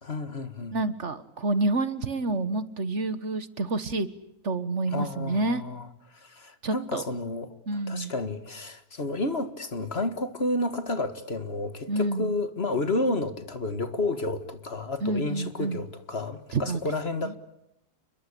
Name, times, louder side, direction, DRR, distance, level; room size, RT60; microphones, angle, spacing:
voice 1, 0.0-0.8 4.9-5.9 6.1-7.6 7.9-17.4, left 2 dB, 45° left, 2.0 m, -31 dB
voice 2, 0.7-4.1 4.4-5.6 6.6-7.0 7.7-8.1 11.9-12.3 15.0-15.8 16.5-16.8 17.2-17.3, right 2 dB, 50° right, 1.6 m, -28 dB
30.0 x 22.0 x 8.5 m
omnidirectional pair, 1.6 m